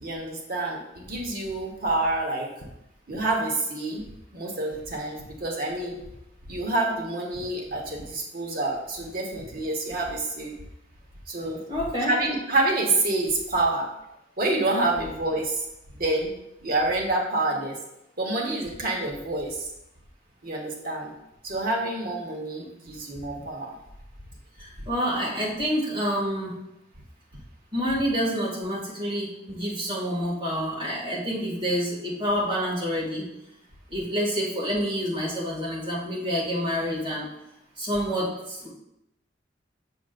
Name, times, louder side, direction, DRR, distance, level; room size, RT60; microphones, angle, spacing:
voice 1, 0.0-2.5 3.1-4.1 4.3-5.9 6.5-10.5 11.3-11.6 12.1-13.9 14.4-15.7 15.9-16.3 16.6-17.8 18.2-19.7 20.4-21.1 21.4-23.8, right 2 dB, 50° right, -1 dB, 1.1 m, -27 dB
voice 2, 11.7-12.1 24.6-26.6 27.7-33.3 33.9-37.3 37.8-38.7, equal, 25° right, -6 dB, 2.0 m, -28 dB
7.0 x 6.3 x 2.5 m, 0.86 s
head